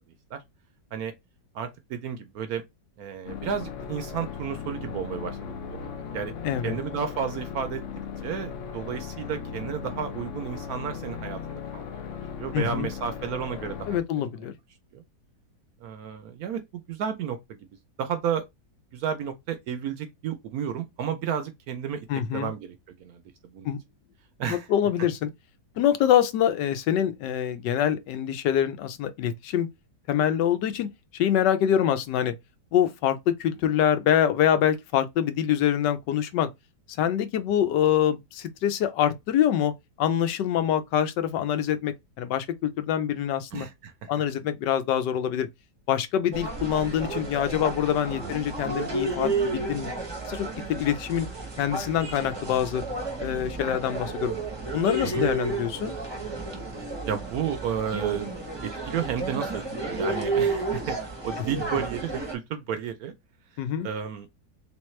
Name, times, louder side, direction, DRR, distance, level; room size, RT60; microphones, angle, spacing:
voice 1, 1.5-2.6 3.0-6.3 6.6-7.8 8.2-14.0 14.9-15.0 15.8-17.6 18.0-18.5 18.9-22.0 22.3-23.2 23.5-23.7 24.4-24.7 43.5-44.1 48.1-48.3 55.0-55.5 57.1-58.3 58.8-63.1 63.8-64.3, right 8 dB, 70° right, 0.9 m, -32 dB
sound 1, 3.3-14.0, left 6 dB, 65° left, 0.8 m, -37 dB
voice 2, 6.4-6.8 12.5-12.9 13.9-14.5 22.1-22.5 23.6-23.8 24.5-25.3 25.8-29.7 30.1-32.3 32.7-36.5 37.0-39.7 40.0-43.7 44.1-45.5 45.9-49.9 50.3-51.3 51.6-52.8 53.2-54.3 54.7-56.0 63.6-63.9, left 10 dB, 80° left, 1.3 m, -25 dB
sound 2, 46.3-62.3, right 3 dB, 20° right, 0.7 m, -32 dB
3.5 x 3.1 x 3.1 m
omnidirectional pair, 1.9 m